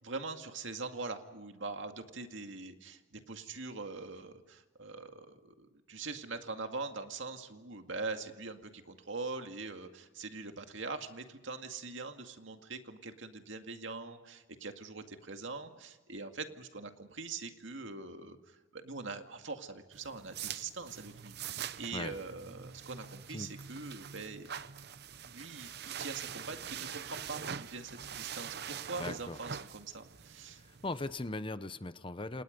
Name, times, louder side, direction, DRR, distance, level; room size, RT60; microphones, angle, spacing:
voice 1, 0.0-24.5 25.2-30.6, right 3 dB, 70° right, 6 dB, 2.2 m, -43 dB
sound 1, 19.9-31.3, right 8 dB, 55° right, 0.8 m, -44 dB
voice 2, 29.0-29.4 30.6-32.4, left 2 dB, 25° left, 13 dB, 0.9 m, -39 dB
29.0 x 27.5 x 5.3 m, 1.1 s
head